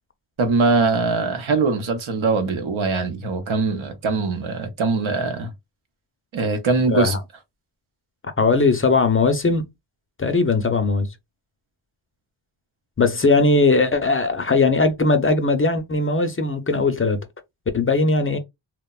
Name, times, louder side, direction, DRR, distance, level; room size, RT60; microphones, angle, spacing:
voice 1, 0.4-5.5 6.3-7.2, right 3 dB, 90° right, 0.8 m, -22 dB
voice 2, 6.9-7.2 8.4-9.6 10.2-11.1 13.0-17.2 17.7-18.4, left 3 dB, 30° left, 0.4 m, -19 dB
2.9 x 2.1 x 2.2 m
wide cardioid pair, 65°, 47 cm